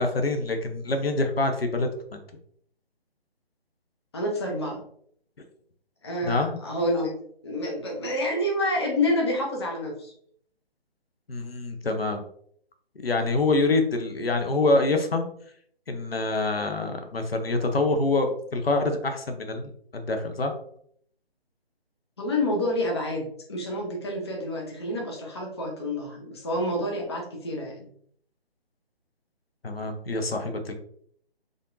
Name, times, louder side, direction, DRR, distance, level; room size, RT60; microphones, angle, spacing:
voice 1, 0.0-2.2 6.2-6.6 11.3-12.2 13.0-15.3 15.9-20.5 29.6-30.7, left 2 dB, 70° left, 5 dB, 0.8 m, -26 dB
voice 2, 4.1-4.8 6.0-7.1 7.4-10.1 22.2-27.7, left 1 dB, 25° left, 0 dB, 0.6 m, -28 dB
3.8 x 3.5 x 2.6 m, 0.63 s
figure-of-eight pair, 145°, 31 cm